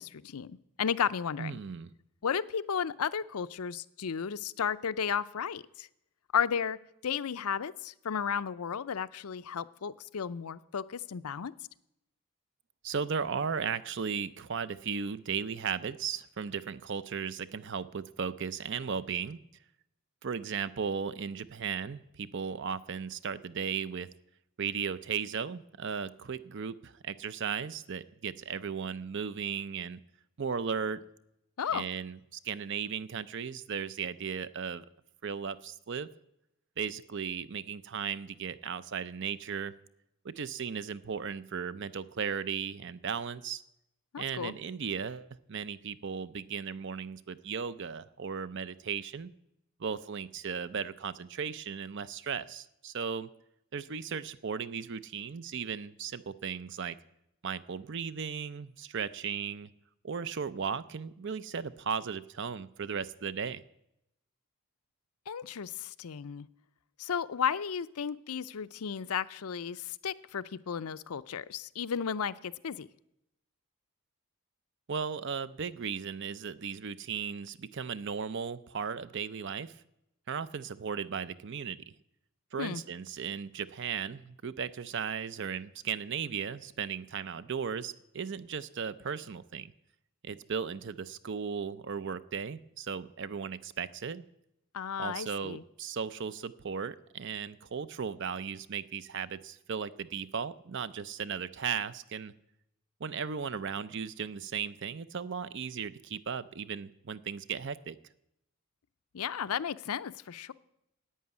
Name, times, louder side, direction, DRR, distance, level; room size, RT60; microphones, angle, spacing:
voice 1, 0.0-1.6 2.2-5.9 6.3-6.8 7.0-11.5 31.6-31.9 44.1-44.5 65.3-66.5 67.0-72.9 82.6-82.8 94.7-95.6 109.1-110.5, left 7 dB, 85° left, 14 dB, 0.5 m, -34 dB
voice 2, 1.4-1.9 12.8-19.4 20.2-24.1 24.6-30.0 30.4-31.0 31.7-34.8 35.2-36.1 36.8-39.7 40.2-43.6 44.2-49.3 49.8-53.3 53.7-57.0 57.4-59.7 60.0-63.6 74.9-79.8 80.3-81.9 82.5-89.7 90.2-94.2 95.0-102.3 103.0-108.0, right 6 dB, 55° right, 15 dB, 0.5 m, -36 dB
11.0 x 8.8 x 9.4 m, 0.83 s
head